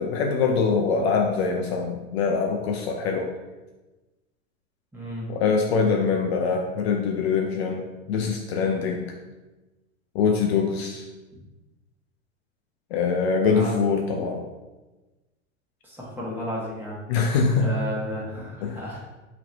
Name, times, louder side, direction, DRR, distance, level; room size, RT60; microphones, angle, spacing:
voice 1, 0.0-3.3 5.3-9.1 10.1-11.0 12.9-14.4 17.1-17.7 18.6-18.8, left 5 dB, 50° left, 2 dB, 0.5 m, -24 dB
voice 2, 4.9-5.3 13.5-13.7 15.8-16.9 17.6-19.1, equal, 5° right, -6 dB, 1.2 m, -33 dB
3.1 x 3.0 x 3.9 m, 1.1 s
hypercardioid pair, 110°, 40 cm